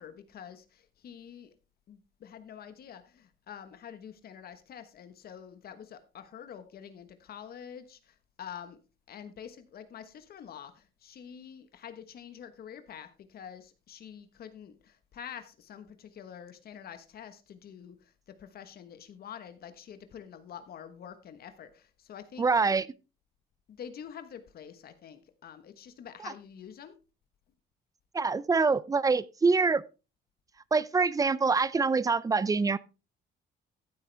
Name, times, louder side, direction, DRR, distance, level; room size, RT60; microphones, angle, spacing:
voice 1, 0.0-1.5 1.9-8.8 9.1-18.1 18.4-22.5 23.7-26.9, left 8 dB, 55° left, 1.3 m, -47 dB
voice 2, 22.4-22.9 28.1-29.8 30.7-32.8, right 4 dB, 20° right, 0.5 m, -25 dB
14.0 x 8.2 x 3.4 m
cardioid pair, 135°, 19 cm